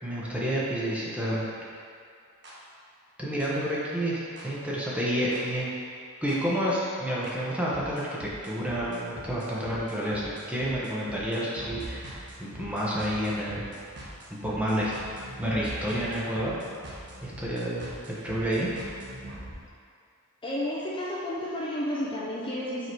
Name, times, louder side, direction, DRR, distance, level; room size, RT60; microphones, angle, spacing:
voice 1, 0.0-1.5 3.2-5.7 6.2-13.8 14.4-14.9 15.4-16.6 17.2-18.7, equal, 5° right, -7 dB, 1.1 m, -29 dB
sound 1, 2.4-2.5 3.4-3.5 4.4-4.5 5.3-5.4 6.3-6.4 7.2-7.3 7.7-19.5, right 1 dB, 50° right, 1.3 m, -43 dB
voice 2, 20.4-22.9, left 1 dB, 25° left, -6 dB, 0.7 m, -31 dB
5.7 x 4.8 x 4.6 m, 2.3 s
head